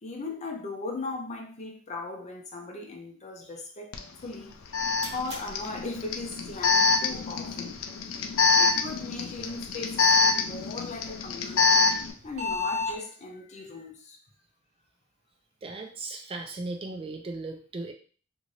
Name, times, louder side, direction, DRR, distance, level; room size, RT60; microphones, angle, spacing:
voice 1, 0.0-3.9 4.2-4.6 5.1-7.8 8.6-11.9 12.2-14.2, left 3 dB, 35° left, 0.6 m, -38 dB
Alarm, 3.9-4.0 4.7-12.1, left 4 dB, 85° left, 0.4 m, -25 dB
sound 1, 4.5-13.0, left 3 dB, 55° right, 1.2 m, -40 dB
voice 2, 15.6-17.9, right 3 dB, 25° right, 0.3 m, -37 dB
2.6 x 2.5 x 3.1 m
head